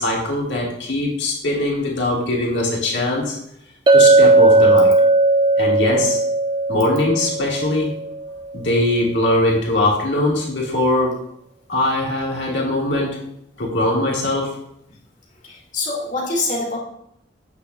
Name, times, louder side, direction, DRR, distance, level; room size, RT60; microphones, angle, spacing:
voice 1, 0.0-3.4 3.9-4.9 5.6-6.2 6.7-7.9 8.5-11.1 11.7-13.2 13.6-14.6, left 1 dB, 65° left, -3 dB, 1.8 m, -21 dB
Chink clink, 3.9-8.3, right 2 dB, 25° right, 0.4 m, -16 dB
voice 2, 15.4-16.8, left 2 dB, 40° left, -4 dB, 2.2 m, -25 dB
7.6 x 6.7 x 2.4 m, 0.76 s
head